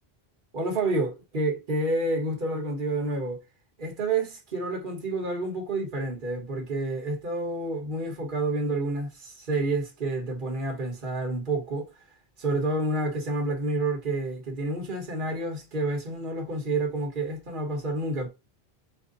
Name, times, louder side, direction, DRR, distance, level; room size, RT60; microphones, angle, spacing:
voice 1, 0.5-3.4 3.8-11.9 12.4-18.3, right 2 dB, 55° right, 1.4 m, -29 dB
4.4 x 2.6 x 3.9 m
omnidirectional pair, 1.1 m